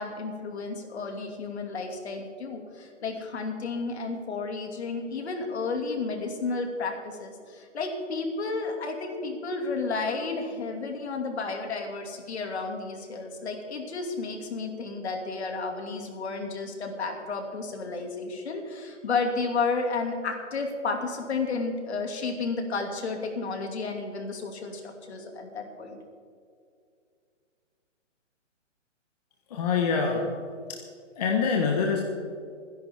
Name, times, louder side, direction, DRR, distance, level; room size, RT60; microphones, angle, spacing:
voice 1, 0.0-26.0, left 4 dB, 60° left, 3 dB, 2.6 m, -32 dB
voice 2, 29.5-30.2 30.7-30.8 31.1-32.0, left 5 dB, 30° left, 0 dB, 1.4 m, -25 dB
25.5 x 11.0 x 3.7 m, 2.3 s
hypercardioid pair, 165°, 37 cm